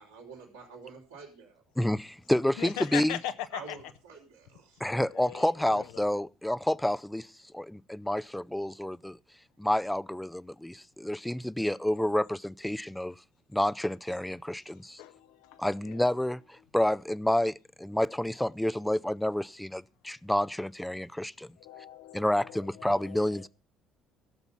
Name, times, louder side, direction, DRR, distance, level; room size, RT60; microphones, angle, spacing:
voice 1, 0.0-1.6 3.5-4.8, right 4 dB, 85° right, 3.9 m, -48 dB
voice 2, 1.8-3.2 4.8-9.2 9.6-13.2 13.5-15.0 15.6-21.5 22.1-23.5, left 1 dB, 5° left, 0.5 m, -29 dB
voice 3, 2.6-3.8 5.1-6.0 14.7-16.0 21.6-23.5, left 12 dB, 70° left, 0.9 m, -40 dB
16.0 x 6.9 x 5.6 m
figure-of-eight pair, 55°, 0 cm